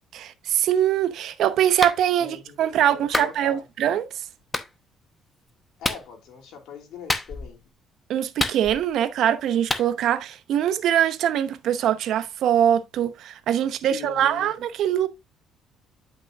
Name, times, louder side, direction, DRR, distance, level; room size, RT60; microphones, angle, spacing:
voice 1, 0.1-4.1 8.1-15.1, right 10 dB, 65° right, 0.8 m, -23 dB
Clapping, 1.8-2.0 3.1-3.4 4.5-4.7 5.8-6.1 7.1-7.5 8.4-9.0 9.7-9.9, left 2 dB, 15° left, 0.9 m, -27 dB
voice 2, 2.2-3.6 5.8-7.6 13.8-14.5, left 7 dB, 75° left, 2.8 m, -41 dB
9.7 x 5.8 x 2.4 m
cardioid pair, 105°, 0 cm